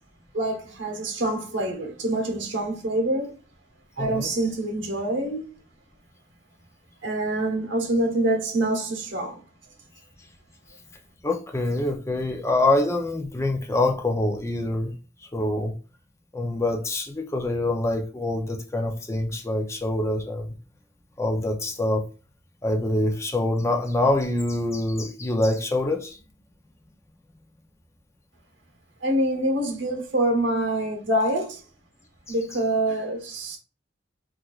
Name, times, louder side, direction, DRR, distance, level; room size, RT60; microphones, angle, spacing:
voice 1, 0.3-3.3 4.0-5.5 7.0-9.4 29.0-31.5 32.3-33.6, right 1 dB, 80° right, 1.0 m, -26 dB
voice 2, 4.0-4.3 11.2-14.9 15.3-15.8 16.3-20.5 21.2-22.0 22.6-26.2 31.1-31.2 32.3-32.4, left 2 dB, 15° left, 0.5 m, -25 dB
4.3 x 2.4 x 2.3 m
head